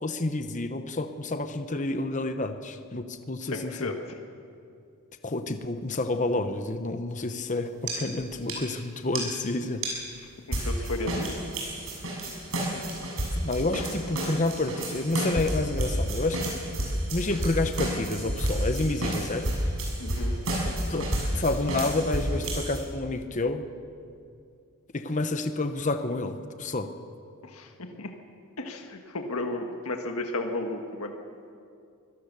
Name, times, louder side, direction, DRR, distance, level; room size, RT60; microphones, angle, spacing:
voice 1, 0.0-3.9 5.2-9.8 13.3-16.5 17.1-19.5 20.9-23.6 24.9-26.9, left 2 dB, 35° left, 8 dB, 0.9 m, -29 dB
voice 2, 3.5-4.0 10.5-11.3 20.0-20.4 27.5-28.1 28.6-31.1, left 2 dB, 80° left, 4 dB, 1.6 m, -33 dB
sound 1, 7.9-8.0 8.2-8.3 8.5-8.6 9.2-9.3 9.8-9.9 10.5-22.8, right 1 dB, 70° right, 6.8 m, -30 dB
24.5 x 17.5 x 6.8 m, 2.4 s
head